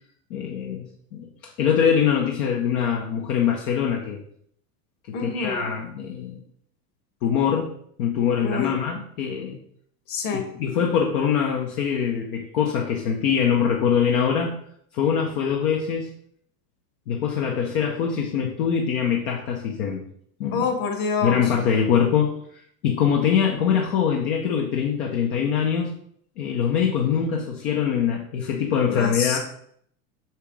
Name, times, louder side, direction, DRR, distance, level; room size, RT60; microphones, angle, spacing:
voice 1, 0.3-0.8 1.1-4.2 5.1-6.4 7.2-7.7 8.0-9.6 10.3-14.5 14.9-16.1 17.1-20.0 20.4-20.7 21.2-25.9 26.4-29.4, left 7 dB, 60° left, 0 dB, 1.5 m, -23 dB
voice 2, 5.1-5.7 8.4-8.8 10.1-10.5 20.5-21.4 28.9-29.4, left 5 dB, 45° left, 5 dB, 2.2 m, -26 dB
6.6 x 6.2 x 5.0 m, 0.65 s
hypercardioid pair, 110°, 49 cm